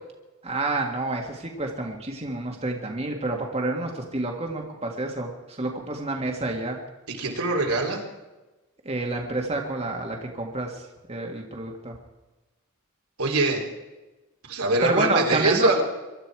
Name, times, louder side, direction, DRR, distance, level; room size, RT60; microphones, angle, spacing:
voice 1, 0.4-6.8 8.9-10.8 11.1-12.0 14.8-15.7, right 2 dB, 30° right, 1 dB, 1.8 m, -28 dB
voice 2, 7.1-8.0 13.2-13.6 14.5-15.8, right 2 dB, 80° right, 0 dB, 3.2 m, -23 dB
23.5 x 12.5 x 4.8 m, 1.1 s
head